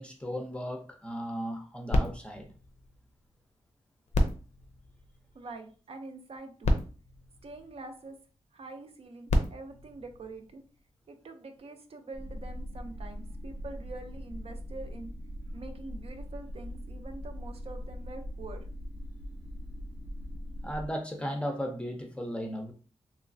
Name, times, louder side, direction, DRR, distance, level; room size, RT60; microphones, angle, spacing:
voice 1, 0.0-2.5 20.6-22.7, equal, 10° left, 0.5 m, -36 dB
sound 1, 1.9-3.5 4.1-5.7 6.3-6.4 6.6-8.2 9.0-10.9 11.6-11.7, left 1 dB, 75° left, 0.5 m, -32 dB
voice 2, 5.3-6.8 7.4-8.2 8.5-10.6 11.1-15.1 15.5-18.7, right 3 dB, 60° right, 0.5 m, -45 dB
sound 2, 12.1-20.9, equal, 90° right, 1.1 m, -41 dB
3.1 x 3.0 x 2.6 m
wide cardioid pair, 150°, 12 cm